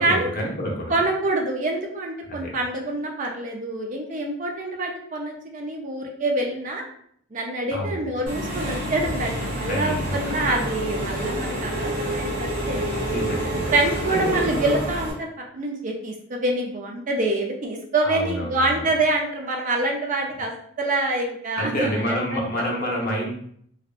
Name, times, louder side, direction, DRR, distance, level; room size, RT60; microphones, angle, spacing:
voice 1, 0.0-1.0 2.3-2.6 7.7-8.1 9.6-10.6 12.6-14.8 18.0-18.9 21.6-23.3, equal, 45° left, -2 dB, 0.7 m, -29 dB
voice 2, 0.9-6.8 7.3-12.8 13.7-15.3 15.5-22.4 22.8-23.0, right 2 dB, 40° right, 1 dB, 0.4 m, -26 dB
Engine / Mechanisms, 8.3-15.1, right 1 dB, 75° right, 0.9 m, -28 dB
2.7 x 2.0 x 2.4 m, 0.65 s
head